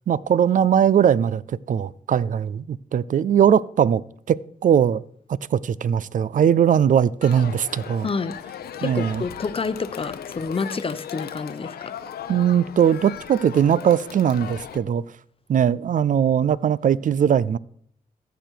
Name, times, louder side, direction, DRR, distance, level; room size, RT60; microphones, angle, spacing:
voice 1, 0.1-1.4 1.7-4.0 4.3-5.0 5.3-8.1 8.8-9.2 12.3-15.0 15.5-17.6, right 8 dB, 55° right, 0.4 m, -20 dB
Crowd, 7.2-14.8, left 9 dB, 85° left, 0.7 m, -37 dB
voice 2, 8.0-8.3 8.8-11.9, left 4 dB, 35° left, 0.8 m, -28 dB
14.5 x 5.1 x 4.6 m
cardioid pair, 65°, 16 cm